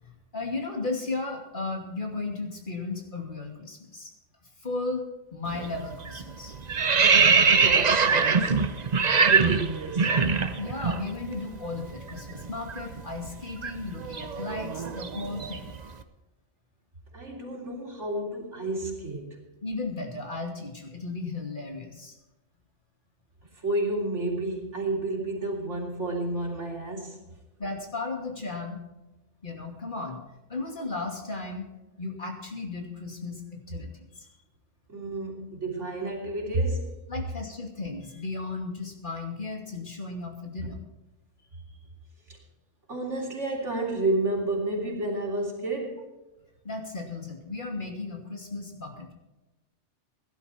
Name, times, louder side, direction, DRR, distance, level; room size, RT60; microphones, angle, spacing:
voice 1, 0.0-4.1 4.4-5.0 5.3-6.5 10.6-15.7 19.6-22.2 27.6-28.8 29.4-30.2 30.5-31.6 32.0-34.3 37.1-40.8 41.7-41.8 46.6-49.1, left 3 dB, 45° left, 2 dB, 2.8 m, -35 dB
sound 1, 5.5-5.8 6.1-11.0 11.3-11.5 11.8-15.8, right 5 dB, 40° right, 0.9 m, -23 dB
voice 2, 7.0-8.6 9.2-10.2 17.1-19.4 23.5-27.2 34.9-37.0 42.3-42.4 42.9-46.1, right 2 dB, 85° right, 0 dB, 3.7 m, -31 dB
17.0 x 11.5 x 4.4 m, 1.0 s
omnidirectional pair, 1.2 m